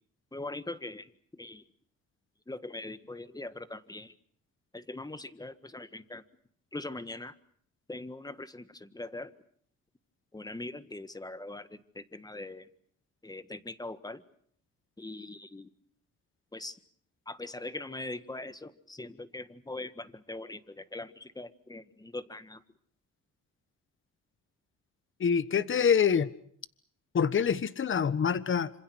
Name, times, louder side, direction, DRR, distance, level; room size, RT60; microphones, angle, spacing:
voice 1, 0.3-1.6 2.5-4.1 4.7-6.2 6.7-7.4 7.9-9.3 10.3-12.7 13.2-14.2 15.0-15.7 16.5-16.8 17.3-22.6, left 2 dB, 15° left, 13 dB, 1.6 m, -41 dB
voice 2, 25.2-26.3 27.1-28.7, left 7 dB, 40° left, 16 dB, 1.3 m, -25 dB
26.5 x 26.5 x 6.4 m, 0.62 s
cardioid pair, 90°, 30 cm